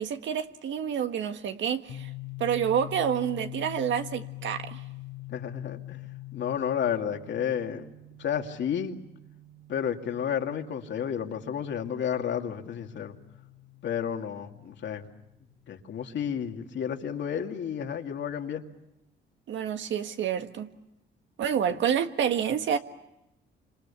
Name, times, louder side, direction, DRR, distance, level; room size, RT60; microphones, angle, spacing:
voice 1, 0.0-2.1 2.4-4.8 19.5-20.7 21.4-22.8, right 8 dB, 70° right, 1.6 m, -28 dB
sound 1, 1.9-15.5, left 12 dB, 90° left, 2.0 m, -44 dB
voice 2, 5.3-6.0 6.3-7.9 8.2-9.0 9.7-13.1 13.8-15.1 15.7-18.6, left 8 dB, 65° left, 2.4 m, -31 dB
28.0 x 26.5 x 7.1 m
cardioid pair, 90°, 20 cm